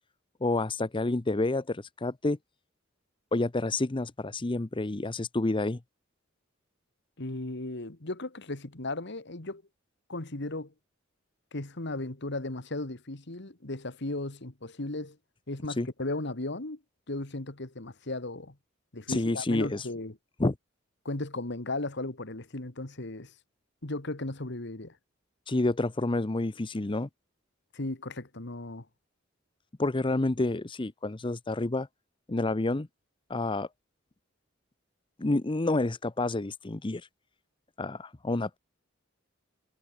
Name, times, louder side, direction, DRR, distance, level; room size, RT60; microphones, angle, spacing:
voice 1, 0.4-2.4 3.3-5.8 15.7-15.9 19.1-19.9 20.4-20.5 25.5-27.1 29.8-31.9 32.3-32.9 33.3-33.7 35.2-37.1 37.8-38.6, left 2 dB, 25° left, 0.7 m, -29 dB
voice 2, 7.2-9.6 10.1-10.7 11.5-15.2 15.5-16.8 17.1-18.6 18.9-20.1 21.1-23.3 23.8-24.9 27.7-28.8, left 2 dB, 60° left, 2.0 m, -36 dB
head